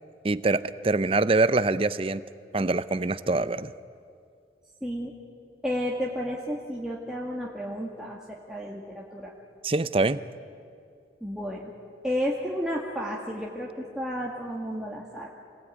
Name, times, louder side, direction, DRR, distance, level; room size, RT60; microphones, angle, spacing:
voice 1, 0.2-2.2 2.5-3.7 9.6-10.2, right 2 dB, 30° right, 14 dB, 0.6 m, -24 dB
voice 2, 4.8-5.1 5.6-9.3 11.2-11.7 12.0-15.3, equal, 5° right, -4 dB, 2.0 m, -32 dB
28.0 x 20.5 x 9.3 m, 2.4 s
head